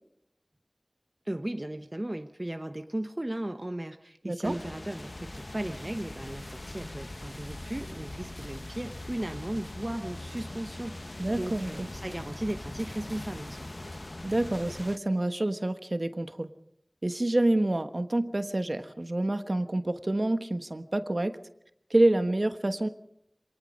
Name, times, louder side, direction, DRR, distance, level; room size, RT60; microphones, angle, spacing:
voice 1, 1.2-13.7, right 1 dB, 35° right, 7 dB, 1.0 m, -36 dB
sound 1, 4.4-15.0, left 1 dB, 55° left, 0.7 m, -41 dB
voice 2, 11.2-11.9 14.2-16.5 17.0-21.4 21.9-22.9, right 1 dB, 60° right, 9 dB, 1.3 m, -27 dB
26.0 x 19.0 x 5.4 m, 0.76 s
wide cardioid pair, 45°, 0 cm